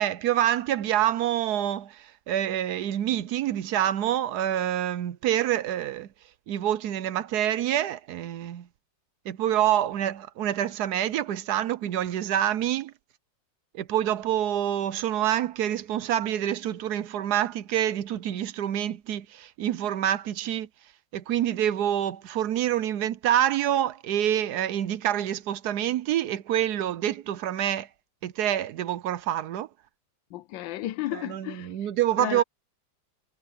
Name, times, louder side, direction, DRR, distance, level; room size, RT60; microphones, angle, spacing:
voice 1, 0.0-6.1 6.5-8.7 9.3-12.9 13.7-20.7 21.1-27.9 28.2-29.7 31.1-32.4, right 11 dB, 70° right, 1.1 m, -27 dB
voice 2, 30.3-31.9 32.2-32.4, left 14 dB, 85° left, 1.4 m, -33 dB
omnidirectional pair, 2.0 m